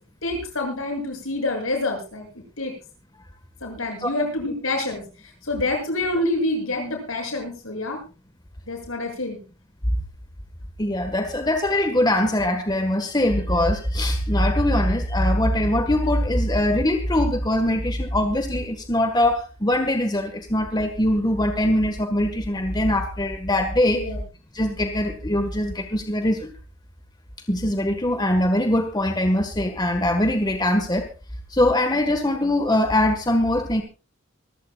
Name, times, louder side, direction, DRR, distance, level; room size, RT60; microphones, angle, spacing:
voice 1, 0.2-2.8 3.6-5.0 5.4-8.0 8.7-9.4 23.9-24.2, left 2 dB, 75° left, 3 dB, 7.2 m, -27 dB
voice 2, 10.8-24.0 24.5-26.5 27.5-31.1 31.5-33.8, left 1 dB, 20° left, 6 dB, 1.5 m, -22 dB
25.0 x 15.5 x 2.4 m, 0.32 s
head